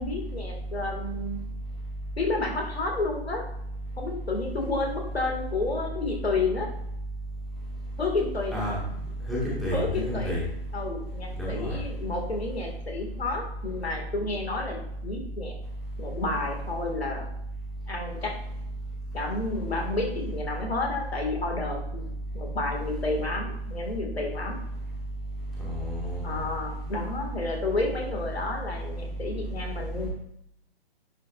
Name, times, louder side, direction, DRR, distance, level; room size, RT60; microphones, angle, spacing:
voice 1, 0.0-1.4 2.2-3.4 4.0-6.7 8.0-8.6 9.7-10.3 10.7-15.5 16.0-17.3 17.9-18.3 19.1-22.1 22.3-24.6 26.2-30.1, left 3 dB, 70° left, 1 dB, 2.2 m, -31 dB
voice 2, 9.3-10.4 11.4-11.8 25.6-26.4, equal, ahead, -8 dB, 1.9 m, -30 dB
10.5 x 6.2 x 2.5 m, 0.75 s
figure-of-eight pair, 135°, 32 cm